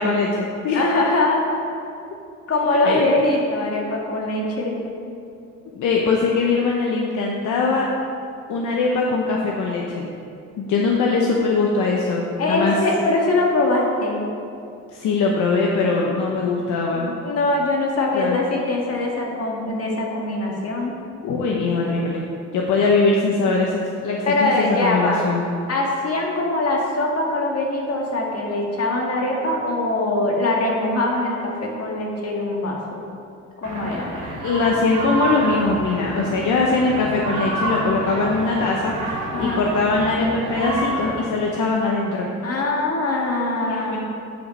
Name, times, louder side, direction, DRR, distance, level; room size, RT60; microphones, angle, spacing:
voice 1, 0.0-0.8 2.8-3.1 5.7-7.9 8.5-10.1 10.6-12.8 14.9-17.1 18.1-18.4 21.2-22.3 22.5-25.5 34.1-42.3 43.7-44.0, left 3 dB, 75° left, -1 dB, 0.9 m, -21 dB
voice 2, 0.7-1.4 2.5-4.8 12.4-14.2 16.4-20.9 24.3-25.2 25.7-33.0 33.6-34.1 39.3-39.6 42.4-44.0, left 2 dB, 55° left, -1 dB, 1.8 m, -22 dB
sound 1, 33.6-41.2, right 2 dB, 80° right, 2.1 m, -28 dB
9.1 x 5.1 x 5.4 m, 2.5 s
cardioid pair, 90°, 30 cm